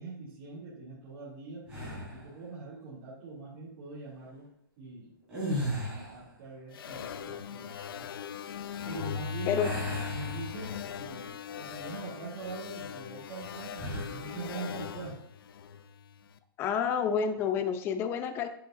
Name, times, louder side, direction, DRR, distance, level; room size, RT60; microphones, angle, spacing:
voice 1, 0.0-1.6 2.1-4.5 4.8-5.1 5.6-8.1 8.9-9.6 10.1-15.2, right 4 dB, 35° right, -10 dB, 2.5 m, -43 dB
sound 1, 1.7-2.3 5.2-6.3 9.6-11.0 11.5-11.7 13.7-14.2, equal, 10° right, 3.1 m, -36 dB
sound 2, 6.7-16.2, left 7 dB, 70° left, 0.5 m, -39 dB
voice 2, 16.6-18.5, left 7 dB, 20° left, 9 dB, 0.5 m, -29 dB
7.8 x 7.6 x 2.6 m, 0.72 s
hypercardioid pair, 160°, 12 cm